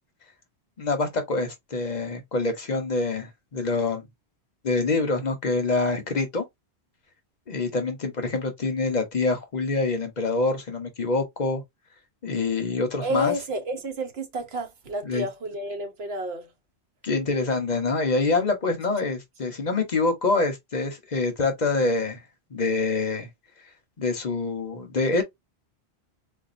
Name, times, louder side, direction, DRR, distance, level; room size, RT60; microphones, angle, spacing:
voice 1, 0.8-4.1 4.6-6.4 7.5-11.6 12.2-13.3 15.0-15.3 17.0-22.2 22.5-23.3 24.0-25.2, left 3 dB, 45° left, 0.9 m, -26 dB
voice 2, 13.0-16.5, equal, 70° right, 1.1 m, -30 dB
4.1 x 2.3 x 2.5 m
omnidirectional pair, 1.1 m